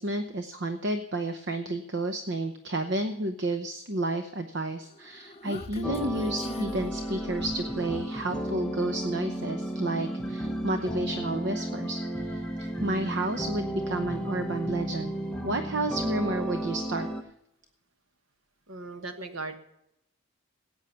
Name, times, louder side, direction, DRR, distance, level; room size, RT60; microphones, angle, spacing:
voice 1, 0.0-12.4 12.8-15.1 15.4-17.1, right 2 dB, 55° right, 8 dB, 0.8 m, -31 dB
Human voice, 4.9-7.9, left 2 dB, 30° left, 0.6 m, -40 dB
sound 1, 5.8-17.2, right 1 dB, 5° left, 0.9 m, -33 dB
voice 2, 18.7-19.6, right 3 dB, 70° right, 7 dB, 1.4 m, -38 dB
16.0 x 9.0 x 5.7 m, 0.80 s
head